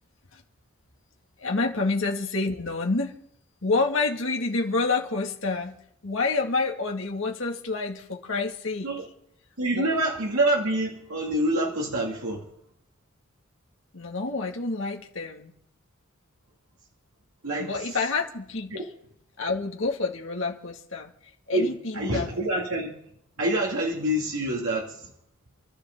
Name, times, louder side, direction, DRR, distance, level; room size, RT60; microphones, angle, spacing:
voice 1, 1.4-3.2 3.6-5.8 6.0-8.9 9.7-9.9 13.9-15.5 17.6-18.7 19.4-21.1 21.5-22.3, left 3 dB, 65° left, 1 dB, 2.3 m, -28 dB
voice 2, 9.6-12.5 17.4-17.7 18.7-18.8 21.5-22.9 23.4-25.1, right 1 dB, 85° right, -2 dB, 2.5 m, -26 dB
28.0 x 13.0 x 3.9 m, 0.71 s
head